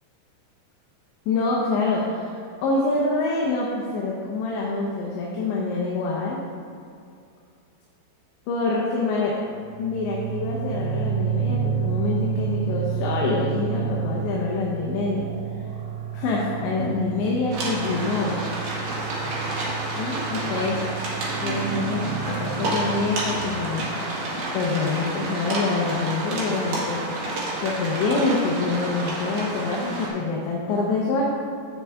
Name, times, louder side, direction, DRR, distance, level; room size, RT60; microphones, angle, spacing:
voice 1, 1.3-2.4 2.6-6.4 8.5-9.3 9.8-15.3 16.1-18.4 20.0-20.8 21.4-24.2 24.5-27.1 27.6-31.2, left 3 dB, 75° left, -3 dB, 2.9 m, -26 dB
sound 1, 9.6-24.2, right 7 dB, 80° right, 2.8 m, -30 dB
sound 2, 17.5-30.1, right 1 dB, 60° right, 2.6 m, -30 dB
14.5 x 4.9 x 3.5 m, 2.4 s
omnidirectional pair, 5.6 m